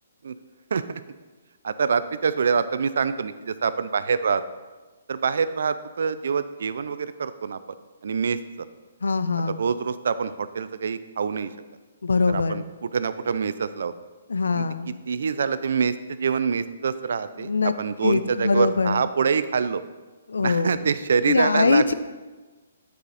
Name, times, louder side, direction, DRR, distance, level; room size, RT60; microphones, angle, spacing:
voice 1, 0.7-1.0 1.6-4.4 5.1-7.6 8.0-8.4 9.5-11.5 12.3-12.6 12.9-13.9 14.5-14.6 15.1-19.8 20.4-21.9, right 6 dB, 70° right, 13 dB, 0.4 m, -25 dB
voice 2, 9.0-9.6 12.0-12.6 14.3-14.9 17.4-17.7 18.0-19.0 20.3-20.8 21.3-21.9, left 4 dB, 90° left, 12 dB, 0.5 m, -22 dB
9.1 x 4.9 x 4.1 m, 1.3 s
hypercardioid pair, 150°, 0 cm